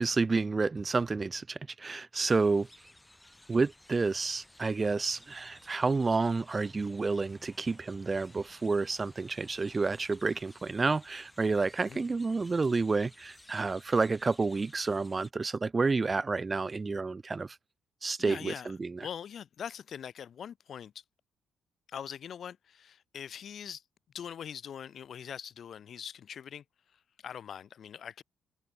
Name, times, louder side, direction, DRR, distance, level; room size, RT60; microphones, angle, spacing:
voice 1, 0.0-2.7 3.5-17.6 18.0-19.1, right 4 dB, 30° right, 0.6 m, -30 dB
sound 1, 2.2-15.3, left 1 dB, 10° left, 2.2 m, -57 dB
voice 2, 18.2-18.7 19.0-20.9 21.9-23.8 24.1-26.6 27.2-28.2, left 8 dB, 60° left, 1.0 m, -42 dB
cardioid pair, 90°, 0 cm